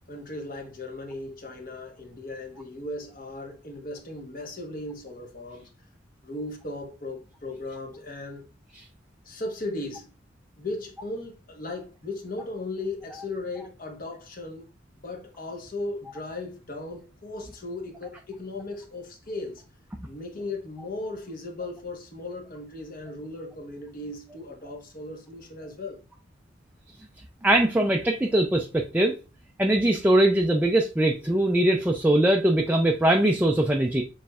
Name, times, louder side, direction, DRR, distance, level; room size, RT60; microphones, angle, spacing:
voice 1, 0.1-5.7 6.2-8.4 9.2-10.1 10.5-14.7 15.0-19.6 20.0-26.0, left 2 dB, 45° left, 1.1 m, -37 dB
voice 2, 27.4-29.1 29.6-34.0, right 1 dB, 10° right, 0.4 m, -21 dB
6.8 x 3.1 x 2.4 m
head